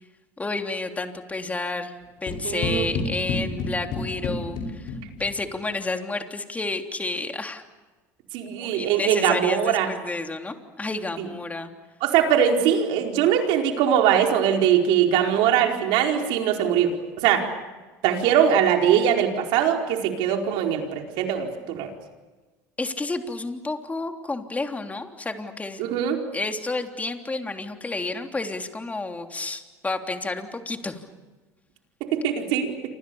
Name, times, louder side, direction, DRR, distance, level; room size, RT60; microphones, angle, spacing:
voice 1, 0.4-1.9 2.2-4.9 5.2-7.6 8.5-11.7 22.8-25.8 26.3-31.0, left 3 dB, 15° left, 5 dB, 3.3 m, -30 dB
sound 1, 2.3-5.5, left 3 dB, 60° left, 7.6 m, -30 dB
voice 2, 2.4-2.9 8.3-9.9 12.0-16.9 17.2-17.5 18.0-21.9 25.9-26.2 32.2-32.7, right 9 dB, 70° right, 3 dB, 4.6 m, -21 dB
29.0 x 26.0 x 7.2 m, 1.3 s
hypercardioid pair, 85°, 9 cm